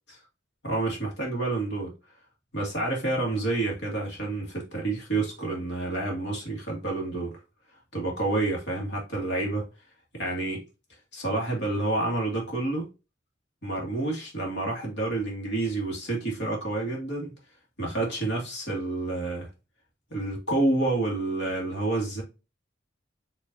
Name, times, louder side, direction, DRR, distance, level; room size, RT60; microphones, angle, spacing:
voice 1, 0.6-1.9 2.5-7.4 7.9-9.7 10.1-10.6 11.1-12.9 13.6-17.3 17.8-19.5 20.1-22.2, right 2 dB, 60° left, 1.8 m, -29 dB
5.1 x 3.0 x 2.6 m
head